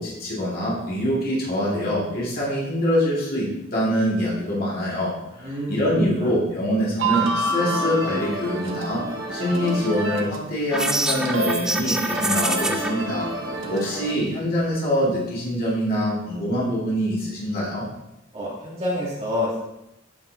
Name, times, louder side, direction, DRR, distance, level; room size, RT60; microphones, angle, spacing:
voice 1, 0.0-9.0 9.3-13.3 13.7-17.8, equal, 50° left, -6 dB, 2.1 m, -24 dB
voice 2, 5.3-5.8 6.2-6.3 13.4-13.8 18.3-19.6, left 1 dB, 30° right, -7 dB, 2.6 m, -28 dB
sound 1, 7.0-10.5 10.8-14.1, right 2 dB, 85° right, 0.9 m, -28 dB
sound 2, 10.7-12.9, right 1 dB, 5° right, 0.4 m, -25 dB
8.8 x 5.6 x 2.7 m, 0.87 s
head